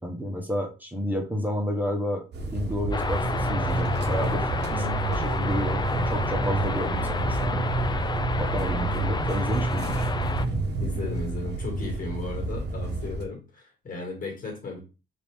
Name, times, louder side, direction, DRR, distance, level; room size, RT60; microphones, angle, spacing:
voice 1, 0.0-4.5 4.8-7.7 8.4-10.1, equal, 10° right, 1.4 m, -30 dB
sound 1, 2.3-13.2, right 2 dB, 55° right, 1.1 m, -32 dB
sound 2, 2.9-10.4, left 4 dB, 20° left, 0.4 m, -31 dB
sound 3, 3.2-11.2, right 3 dB, 80° right, 1.2 m, -30 dB
voice 2, 4.7-5.0 10.8-14.8, left 2 dB, 45° left, 2.1 m, -36 dB
4.9 x 3.0 x 3.6 m
cardioid pair, 90°, 20 cm